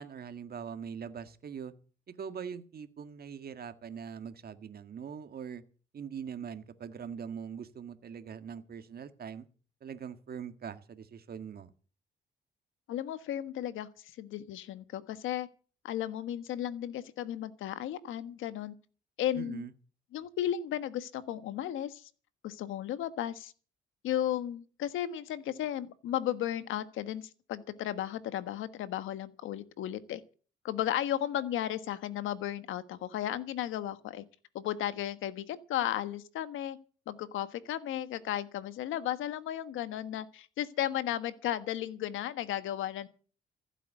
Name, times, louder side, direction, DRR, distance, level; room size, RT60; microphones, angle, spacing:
voice 1, 0.0-1.7 2.2-5.6 5.9-9.5 9.8-11.7 19.3-19.7, right 7 dB, 50° right, 1.7 m, -42 dB
voice 2, 12.9-13.9 14.2-15.5 15.8-18.7 19.2-19.7 20.1-22.1 22.4-23.5 24.0-30.2 30.6-34.2 34.5-36.8 37.1-43.1, left 11 dB, 85° left, 1.3 m, -34 dB
15.5 x 8.4 x 8.2 m
cardioid pair, 90°, 20 cm